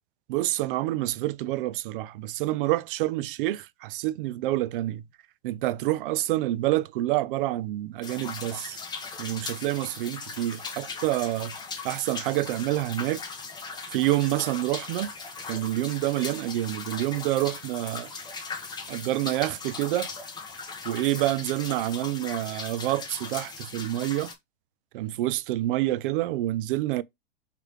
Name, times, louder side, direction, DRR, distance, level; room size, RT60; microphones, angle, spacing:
voice 1, 0.3-5.0 5.4-8.8 9.2-11.5 11.8-13.2 13.9-15.1 15.5-18.1 18.9-20.1 20.8-24.3 24.9-27.0, right 16 dB, 55° right, 0.5 m, -27 dB
sound 1, 8.0-24.3, left 4 dB, 10° left, 0.9 m, -39 dB
4.7 x 3.3 x 3.1 m
hypercardioid pair, 125°, 33 cm